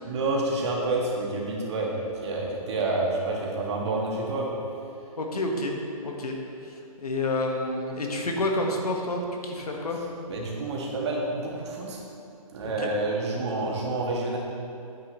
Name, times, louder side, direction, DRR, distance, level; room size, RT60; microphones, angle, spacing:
voice 1, 0.0-4.6 10.3-12.0 12.5-14.4, right 2 dB, 45° right, -2 dB, 1.8 m, -28 dB
voice 2, 5.2-5.8 6.0-6.3 6.6-10.0 12.8-12.9, left 2 dB, 85° left, 1 dB, 1.5 m, -29 dB
9.3 x 9.2 x 3.1 m, 2.6 s
hypercardioid pair, 155°, 19 cm